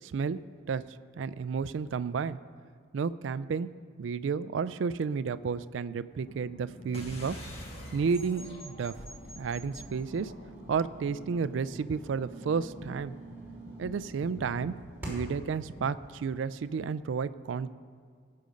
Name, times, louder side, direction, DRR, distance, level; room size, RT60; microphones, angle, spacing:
voice 1, 0.0-0.4 0.7-0.8 1.2-2.4 2.9-3.7 4.0-7.4 7.9-8.9 9.4-10.3 10.7-13.2 13.8-14.7 15.1-17.7, right 5 dB, 80° right, 14 dB, 0.4 m, -31 dB
sound 1, 6.1-17.0, left 1 dB, 70° left, 0.9 m, -51 dB
sound 2, 6.9-11.8, equal, 30° left, 1.5 m, -46 dB
sound 3, 8.8-15.5, right 2 dB, 10° right, 2.9 m, -46 dB
17.5 x 6.7 x 5.2 m, 2.1 s
head